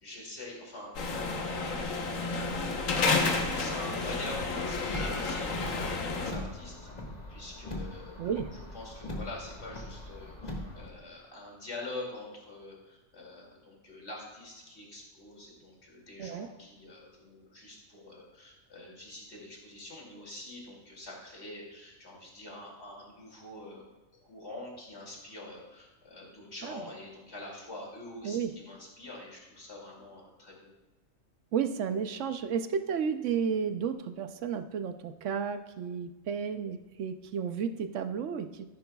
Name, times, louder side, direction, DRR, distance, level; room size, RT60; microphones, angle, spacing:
voice 1, 0.0-1.2 1.5-2.2 3.2-6.7 7.3-23.8 24.2-30.7, left 2 dB, 50° left, -3 dB, 2.8 m, -45 dB
sound 1, 0.9-6.3, left 3 dB, 75° left, 1.4 m, -31 dB
Car, 4.6-10.9, left 1 dB, 30° left, 1.5 m, -41 dB
voice 2, 31.5-38.8, right 7 dB, 70° right, 9 dB, 0.9 m, -32 dB
13.5 x 10.5 x 2.3 m, 1.1 s
omnidirectional pair, 1.4 m